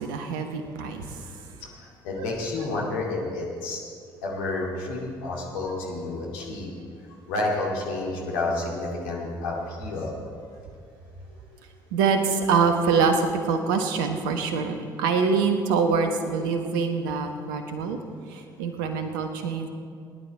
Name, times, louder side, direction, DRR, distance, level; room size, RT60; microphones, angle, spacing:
voice 1, 0.0-1.6 2.1-2.3 11.9-18.0 18.3-19.7, right 5 dB, 70° right, 6 dB, 1.2 m, -25 dB
voice 2, 2.0-3.8 4.2-6.7 7.3-10.1, left 2 dB, 70° left, -3 dB, 2.5 m, -30 dB
19.5 x 11.0 x 4.3 m, 2.2 s
figure-of-eight pair, 50°, 11 cm